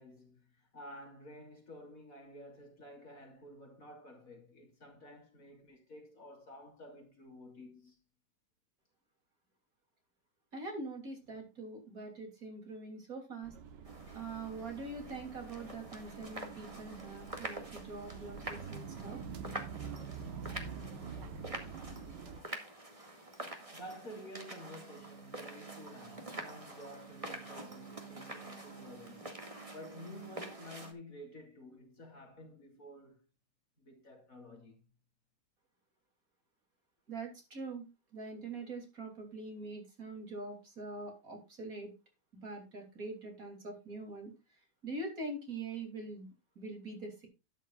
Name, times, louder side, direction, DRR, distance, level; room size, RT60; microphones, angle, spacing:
voice 1, 0.0-8.0 23.7-29.3 29.7-33.2 33.8-34.8, equal, 50° left, 3.4 m, -51 dB
voice 2, 10.5-13.5 14.1-19.2 37.1-37.9 38.1-41.9 42.4-44.3 44.8-46.3 46.6-47.3, right 3 dB, 55° right, 3.5 m, -43 dB
sound 1, 13.4-22.4, right 6 dB, 90° right, 1.7 m, -46 dB
sound 2, 13.8-30.9, right 2 dB, 20° right, 2.0 m, -47 dB
13.0 x 10.0 x 2.4 m
omnidirectional pair, 1.8 m